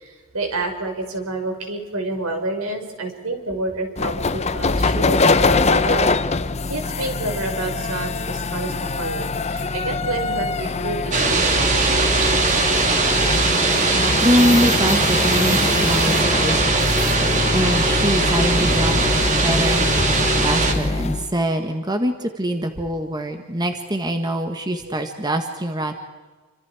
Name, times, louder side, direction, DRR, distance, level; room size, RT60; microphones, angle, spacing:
voice 1, 0.3-6.1 6.7-11.6 24.9-25.0, right 2 dB, 75° right, 3 dB, 5.5 m, -28 dB
sound 1, 4.0-21.3, left 3 dB, 30° left, 0.7 m, -24 dB
sound 2, 11.1-20.7, right 3 dB, 35° right, 2.9 m, -20 dB
voice 2, 14.2-16.8 17.5-19.1 19.4-20.1 20.4-25.9, equal, 20° right, 6 dB, 1.5 m, -23 dB
30.0 x 26.0 x 4.9 m, 1.3 s
head